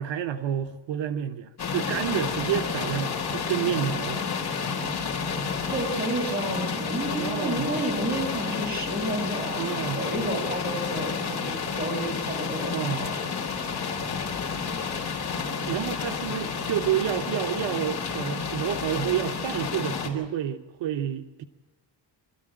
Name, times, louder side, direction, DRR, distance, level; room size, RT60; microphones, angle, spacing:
voice 1, 0.0-4.3 7.2-7.7 9.6-10.0 12.7-13.1 15.7-21.5, right 10 dB, 75° right, 7 dB, 1.0 m, -29 dB
sound 1, 1.6-20.1, left 5 dB, 35° left, 4.1 m, -30 dB
voice 2, 5.7-13.1, right 1 dB, 20° right, 2 dB, 5.6 m, -31 dB
26.0 x 13.5 x 8.9 m, 1.3 s
cardioid pair, 150°, 44 cm